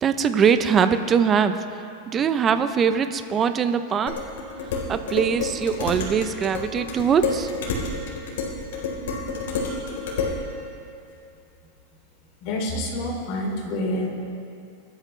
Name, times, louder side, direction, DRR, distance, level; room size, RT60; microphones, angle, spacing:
voice 1, 0.0-1.6 2.1-4.2 4.7-7.5, right 7 dB, 20° right, 10 dB, 0.6 m, -22 dB
Dishes pots and pans, 4.1-10.4, left 4 dB, 85° left, 3.9 m, -29 dB
voice 2, 12.4-14.1, left 1 dB, 45° left, -1 dB, 3.2 m, -27 dB
23.5 x 13.0 x 3.3 m, 2.5 s
supercardioid pair, 160°, 0 cm